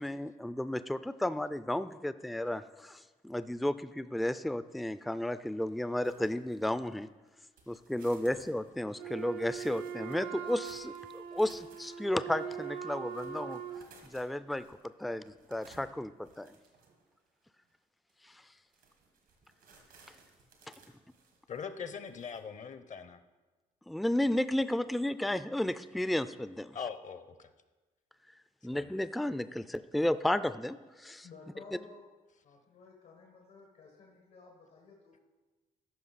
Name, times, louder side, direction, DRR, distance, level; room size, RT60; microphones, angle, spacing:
voice 1, 0.0-7.1 7.7-13.6 14.1-16.6 23.9-26.8 28.6-31.3, left 1 dB, ahead, 13 dB, 0.3 m, -33 dB
sound 1, 6.0-7.3 7.6-17.2 17.7-17.8 18.1-18.2 18.6-22.4, right 4 dB, 90° right, 1.5 m, -61 dB
Wind instrument woodwind instrument, 9.0-13.9, right 8 dB, 70° right, 0.7 m, -41 dB
voice 2, 21.5-23.2 26.7-27.5 28.7-28.9, left 6 dB, 50° left, 11 dB, 0.7 m, -41 dB
voice 3, 31.2-32.0 32.4-35.2, left 4 dB, 80° left, -1 dB, 1.5 m, -54 dB
13.5 x 5.3 x 4.1 m, 1.2 s
supercardioid pair, 65°, 16 cm